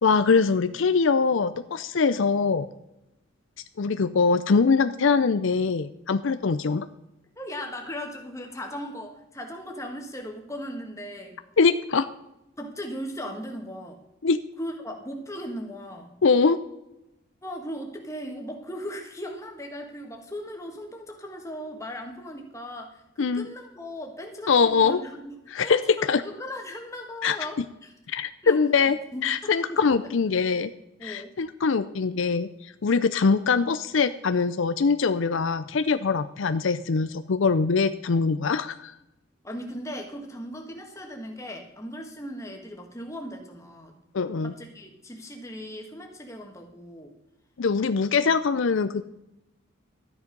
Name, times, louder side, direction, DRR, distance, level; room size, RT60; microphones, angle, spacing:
voice 1, 0.0-2.7 3.8-6.9 11.6-12.1 14.2-14.4 16.2-16.6 23.2-23.5 24.5-25.0 25.5-25.8 26.1-26.2 27.2-27.4 28.1-29.0 29.2-30.7 31.0-38.9 44.1-44.5 47.6-49.0, left 5 dB, 65° left, 10 dB, 0.5 m, -23 dB
voice 2, 7.4-11.4 12.6-14.0 14.6-16.2 17.4-25.4 25.6-27.9 28.4-28.6 29.1-29.8 31.0-31.3 39.4-44.0 44.4-47.1, equal, 15° left, 2 dB, 1.6 m, -38 dB
13.0 x 9.6 x 5.3 m, 0.90 s
head